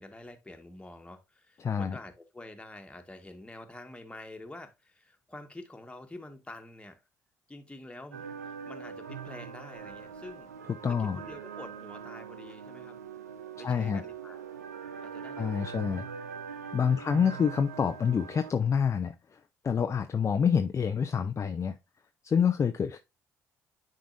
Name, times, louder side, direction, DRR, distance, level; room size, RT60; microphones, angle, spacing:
voice 1, 0.0-7.0 7.5-10.5 10.9-13.0 13.6-14.4 15.0-15.8 16.9-17.3, left 2 dB, 15° left, 1.5 m, -47 dB
voice 2, 1.6-2.0 10.8-11.2 13.6-14.0 15.4-16.1 16.7-19.4 19.6-21.8 22.2-23.0, left 7 dB, 35° left, 0.6 m, -27 dB
sound 1, 8.1-18.5, right 7 dB, 90° right, 0.5 m, -42 dB
10.0 x 3.8 x 2.6 m
hypercardioid pair, 50°, 8 cm